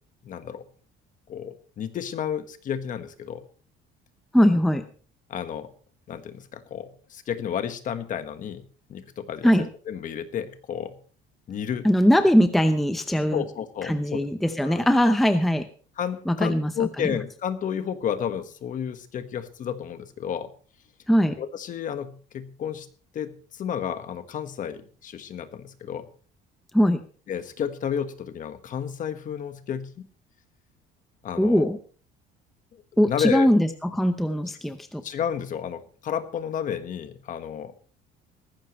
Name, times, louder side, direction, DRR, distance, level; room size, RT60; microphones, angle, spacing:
voice 1, 0.2-0.6 1.3-3.4 5.3-5.7 6.1-8.6 8.9-9.5 9.9-11.0 11.5-11.9 13.3-14.3 14.6-14.8 16.0-20.5 21.4-22.9 23.1-26.0 27.3-30.0 31.2-31.7 32.7-33.5 35.0-37.7, left 8 dB, 40° left, 10 dB, 1.4 m, -31 dB
voice 2, 4.3-4.8 9.4-9.7 11.8-13.4 13.8-15.7 16.3-17.2 21.1-21.4 26.7-27.0 31.4-31.8 33.0-35.0, equal, ahead, 8 dB, 0.7 m, -21 dB
18.5 x 15.0 x 3.1 m, 0.41 s
cardioid pair, 160°, 21 cm